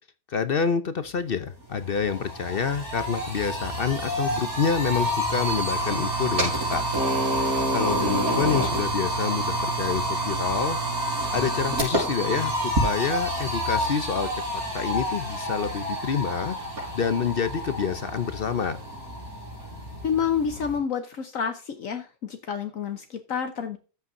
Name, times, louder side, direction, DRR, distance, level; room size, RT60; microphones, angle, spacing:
voice 1, 0.3-6.8 7.4-10.8 11.3-14.3 14.7-16.6 16.9-18.8, left 6 dB, 50° left, 13 dB, 0.8 m, -27 dB
sound 1, 1.4-1.5 1.8-20.8, right 1 dB, 80° right, 5.4 m, -28 dB
voice 2, 20.0-23.8, left 7 dB, 65° left, 8 dB, 1.3 m, -29 dB
13.5 x 8.3 x 2.6 m, 0.34 s
omnidirectional pair, 1.5 m